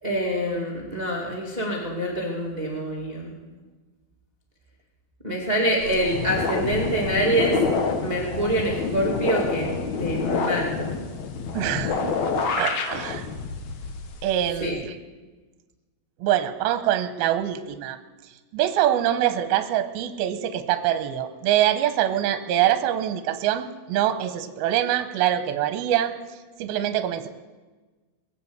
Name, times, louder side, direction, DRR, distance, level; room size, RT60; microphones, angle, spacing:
voice 1, 0.0-3.3 5.2-7.6 8.0-9.7 10.0-10.9 14.6-14.8, right 1 dB, 45° right, -2 dB, 0.5 m, -25 dB
sound 1, 5.8-14.7, left 4 dB, 75° left, 1.7 m, -28 dB
voice 2, 11.5-12.1 12.6-13.3 14.2-14.9 16.2-18.0 18.5-26.1 26.6-27.3, right 11 dB, 75° right, 8 dB, 2.5 m, -24 dB
21.5 x 7.8 x 8.1 m, 1.3 s
omnidirectional pair, 5.0 m